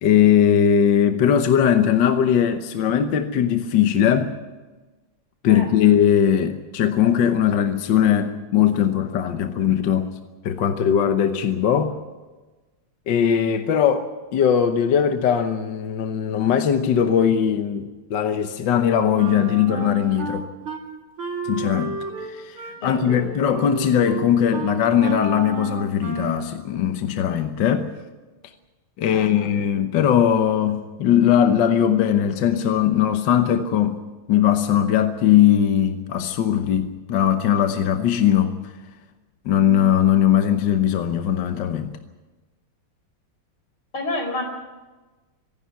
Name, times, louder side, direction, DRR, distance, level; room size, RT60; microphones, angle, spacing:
voice 1, 0.0-4.3 5.4-10.1 10.4-12.0 13.1-20.5 21.5-27.9 29.0-34.0 34.3-38.6 39.4-41.9, left 9 dB, 65° left, 8 dB, 1.6 m, -19 dB
Wind instrument woodwind instrument, 19.2-20.8 21.2-26.5, right 3 dB, 85° right, 3.4 m, -32 dB
voice 2, 22.8-23.2 29.1-29.5 43.9-44.4, left 2 dB, 80° left, 3 dB, 5.7 m, -29 dB
25.0 x 11.0 x 9.4 m, 1.2 s
omnidirectional pair, 2.3 m